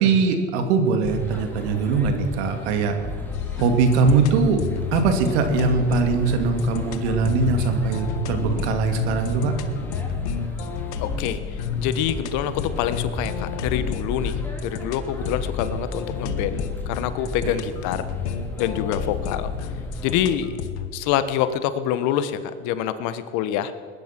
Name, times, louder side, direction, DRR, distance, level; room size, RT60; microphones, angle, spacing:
voice 1, 0.0-3.0 3.6-4.6 4.9-9.5, right 4 dB, 70° right, 6 dB, 2.6 m, -21 dB
sound 1, 1.0-20.4, left 1 dB, 5° left, 3.4 m, -35 dB
sound 2, 3.3-20.9, left 7 dB, 80° left, 1.5 m, -31 dB
voice 2, 11.0-18.0 18.6-19.5 20.0-20.5 20.9-23.7, left 10 dB, 60° left, 13 dB, 1.2 m, -26 dB
20.5 x 11.0 x 6.0 m, 2.1 s
supercardioid pair, 100°, 34 cm